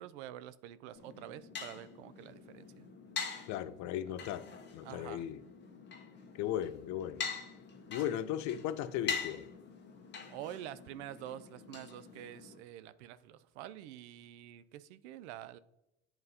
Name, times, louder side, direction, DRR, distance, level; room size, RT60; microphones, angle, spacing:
voice 1, 0.0-2.8 3.7-3.8 4.8-5.3 10.3-15.6, right 12 dB, 90° right, 0.5 m, -47 dB
sound 1, 0.9-12.6, left 6 dB, 35° left, 1.0 m, -44 dB
voice 2, 3.5-4.5 4.7-5.4 6.3-7.2 7.9-9.5, left 11 dB, 60° left, 0.5 m, -36 dB
8.7 x 4.0 x 2.7 m
supercardioid pair, 100°, 33 cm